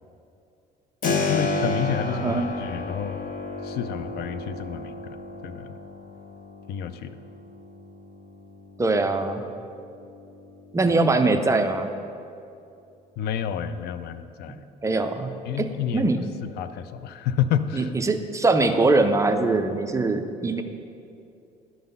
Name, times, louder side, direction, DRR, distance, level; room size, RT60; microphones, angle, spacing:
Keyboard (musical), 1.0-11.7, left 3 dB, 55° left, 0.9 m, -33 dB
voice 1, 1.3-3.2 3.6-5.2 5.4-5.8 6.7-7.2 13.2-14.6 15.5-16.1 16.4-17.9, left 9 dB, 70° left, 12 dB, 0.4 m, -29 dB
voice 2, 2.1-2.5 8.8-9.4 10.7-11.9 14.8-15.3 15.6-15.7 15.9-16.2 17.7-20.6, right 3 dB, 20° right, 7 dB, 0.5 m, -22 dB
11.0 x 3.9 x 5.3 m, 2.6 s
cardioid pair, 110°, 17 cm